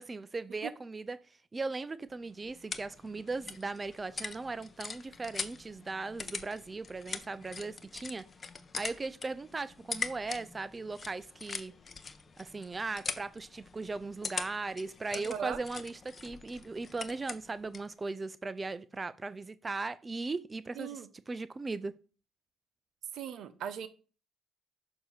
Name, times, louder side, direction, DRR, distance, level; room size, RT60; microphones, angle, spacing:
voice 1, 0.0-8.2 8.7-11.7 12.4-21.9, right 3 dB, 25° right, 0.3 m, -38 dB
sound 1, 2.1-17.9, left 5 dB, 40° left, 0.6 m, -43 dB
voice 2, 15.1-15.6 20.7-21.1 23.1-23.9, right 8 dB, 70° right, 0.6 m, -38 dB
6.6 x 2.7 x 5.6 m
cardioid pair, 80°, 0 cm